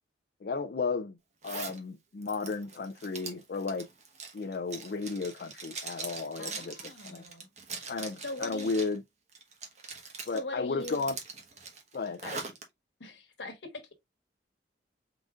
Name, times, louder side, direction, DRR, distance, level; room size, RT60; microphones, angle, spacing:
voice 1, 0.4-1.2 1.4-3.9 4.3-7.2 7.9-9.0 10.3-11.2 11.9-12.2, left 4 dB, 55° left, 0.4 m, -34 dB
Zipper (clothing), 1.4-1.8 2.2-9.0 9.3-10.4 10.8-12.6, right 4 dB, 40° right, 1.1 m, -42 dB
voice 2, 6.4-7.5 8.2-8.7 10.3-11.0 12.2-12.4 13.0-13.9, left 2 dB, 80° left, 1.2 m, -40 dB
4.9 x 3.9 x 2.4 m
head